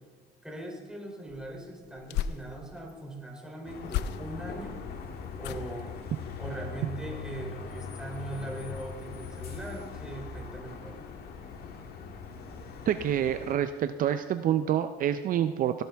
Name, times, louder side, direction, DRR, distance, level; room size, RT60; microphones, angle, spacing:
voice 1, 0.4-4.8 5.3-5.9 6.4-11.1, right 1 dB, 5° right, 0 dB, 3.1 m, -40 dB
sound 1, 1.3-2.9 3.8-4.6 5.4-5.9 6.4-6.7 7.0-7.1, left 10 dB, 85° left, 0.5 m, -36 dB
sound 2, 3.7-13.5, left 5 dB, 70° left, 1.6 m, -41 dB
voice 2, 12.9-15.8, right 10 dB, 55° right, 10 dB, 0.5 m, -27 dB
17.5 x 12.0 x 3.4 m, 1.5 s
cardioid pair, 110°, 17 cm